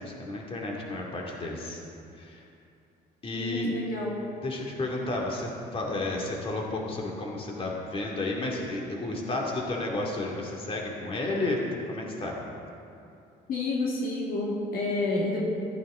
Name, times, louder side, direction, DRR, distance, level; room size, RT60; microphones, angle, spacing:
voice 1, 0.0-1.8 2.1-2.4 3.2-3.8 4.4-11.6 11.9-12.3, left 2 dB, 35° left, -1 dB, 2.3 m, -32 dB
voice 2, 3.3-4.2 13.5-15.4, left 2 dB, 60° left, -3 dB, 2.0 m, -29 dB
14.5 x 13.0 x 3.8 m, 2.7 s
cardioid pair, 110°, 17 cm